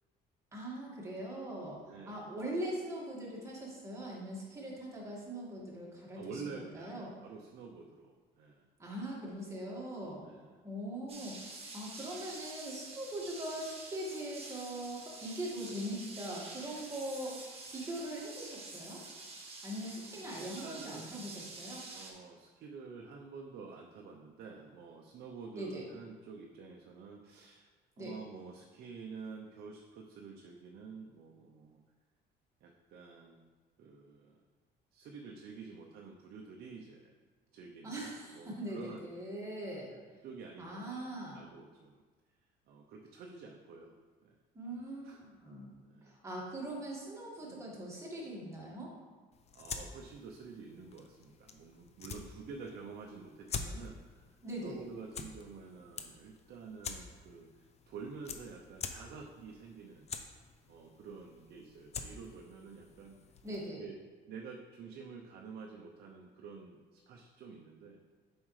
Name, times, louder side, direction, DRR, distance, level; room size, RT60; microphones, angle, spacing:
voice 1, 0.5-7.2 8.8-10.2 10.6-11.4 11.7-17.3 17.7-19.0 19.6-21.8 25.5-25.8 28.0-28.2 37.8-39.9 40.6-41.5 44.5-45.7 46.0-48.9 54.4-54.8 63.4-63.8, right 1 dB, 15° right, -4 dB, 1.9 m, -41 dB
voice 2, 1.9-2.3 6.1-8.7 10.2-10.6 19.9-21.1 21.9-27.7 28.0-31.8 32.6-33.5 33.8-34.4 34.9-37.1 37.5-38.1 38.3-39.0 40.2-41.1 41.3-42.0 42.7-43.9 44.2-44.4 45.0-45.2 45.8-46.2 47.4-47.7 49.5-60.1 60.7-63.2 63.6-64.0 64.3-68.0, right 5 dB, 65° right, 1 dB, 0.7 m, -49 dB
sound 1, 11.1-22.1, right 3 dB, 35° right, 1.5 m, -48 dB
sound 2, 49.3-63.7, left 5 dB, 40° left, 0.6 m, -47 dB
7.3 x 5.3 x 3.2 m, 1.4 s
cardioid pair, 110°, 17 cm